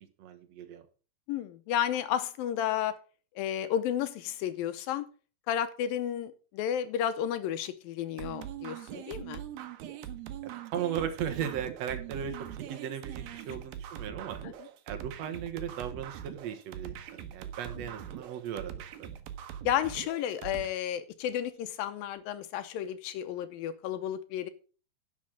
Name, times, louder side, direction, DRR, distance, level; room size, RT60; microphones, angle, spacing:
voice 1, 0.2-0.9 10.7-14.4 14.9-19.1, right 9 dB, 55° right, 6 dB, 2.1 m, -37 dB
voice 2, 1.3-3.0 3.4-5.1 5.5-9.4 14.4-14.5 17.8-17.9 19.6-24.5, left 10 dB, 75° left, 11 dB, 2.4 m, -32 dB
sound 1, 8.2-20.7, right 10 dB, 75° right, 2.7 m, -42 dB
11.5 x 6.3 x 6.4 m, 0.37 s
omnidirectional pair, 4.4 m